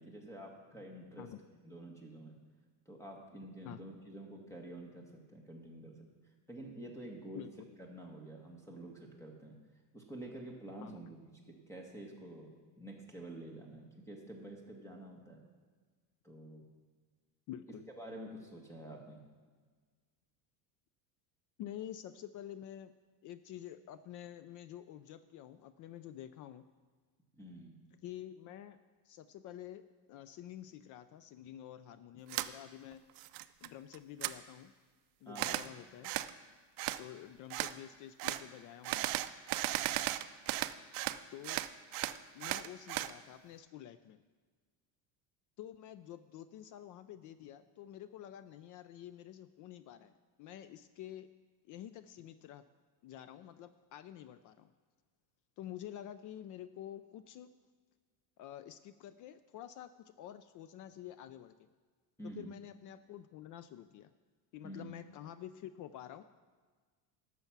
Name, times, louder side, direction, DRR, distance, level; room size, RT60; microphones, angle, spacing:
voice 1, 0.0-1.3 1.6-2.3 2.8-6.1 6.5-7.4 7.9-9.5 9.9-11.2 11.7-12.5 12.8-15.4 16.2-16.6 18.0-19.2 27.3-27.7 35.2-35.6 62.2-62.5 64.6-64.9, right 1 dB, 5° left, 0 dB, 1.8 m, -48 dB
voice 2, 7.3-7.7 10.8-11.0 17.5-17.8 21.6-22.9 23.2-26.7 28.0-28.8 29.1-29.8 30.1-33.0 33.6-34.7 35.2-36.1 37.0-39.2 41.3-41.6 42.3-44.2 45.6-50.1 50.4-51.3 51.6-52.6 53.0-54.7 55.6-57.5 58.4-61.5 62.2-64.1 64.5-66.2, left 11 dB, 45° left, 13 dB, 0.4 m, -49 dB
sound 1, 32.3-32.5 32.9-33.7 33.9-34.3 35.3-35.7 36.0-36.3 36.8-37.0 37.5-37.7 38.2-38.4 38.8-41.2 41.4-43.1, right 15 dB, 50° right, 0.5 m, -36 dB
12.0 x 7.0 x 6.0 m, 1.5 s
cardioid pair, 135°, 45 cm